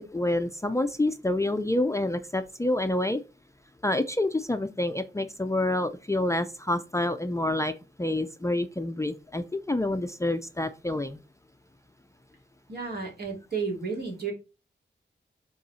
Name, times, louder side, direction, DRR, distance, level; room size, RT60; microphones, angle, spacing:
voice 1, 0.0-3.2 3.8-7.7 8.0-11.2, left 1 dB, 15° left, 8 dB, 0.4 m, -28 dB
voice 2, 12.7-14.3, right 5 dB, 55° right, -1 dB, 2.6 m, -32 dB
5.7 x 3.9 x 5.5 m, 0.31 s
wide cardioid pair, 125°, 19 cm